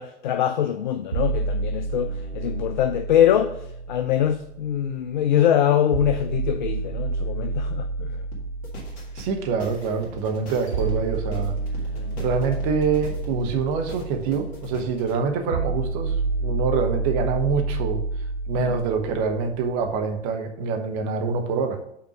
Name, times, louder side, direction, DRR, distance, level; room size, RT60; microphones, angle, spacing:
voice 1, 0.0-3.6 3.9-8.2 11.9-12.3 18.6-18.7, left 10 dB, 45° left, 8 dB, 0.5 m, -23 dB
sound 1, 1.1-5.1 5.9-19.9, right 3 dB, 80° right, 1.1 m, -30 dB
sound 2, 8.3-15.1, right 1 dB, 25° left, 1.8 m, -42 dB
voice 2, 9.1-11.6 12.2-16.1 16.4-18.0 18.5-21.8, right 5 dB, 30° right, 4 dB, 1.0 m, -25 dB
5.7 x 4.4 x 5.7 m, 0.76 s
figure-of-eight pair, 110°, 33 cm